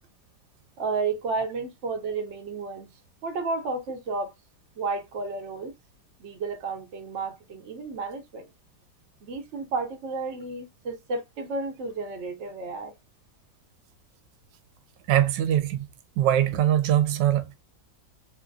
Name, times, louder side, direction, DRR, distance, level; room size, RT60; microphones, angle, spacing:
voice 1, 0.8-2.9 3.2-4.3 4.8-5.7 6.2-8.5 9.2-12.9, right 3 dB, 55° right, 0.9 m, -32 dB
voice 2, 15.1-15.8 16.2-17.5, right 11 dB, 80° right, 1.2 m, -22 dB
3.2 x 2.5 x 2.3 m
omnidirectional pair, 1.9 m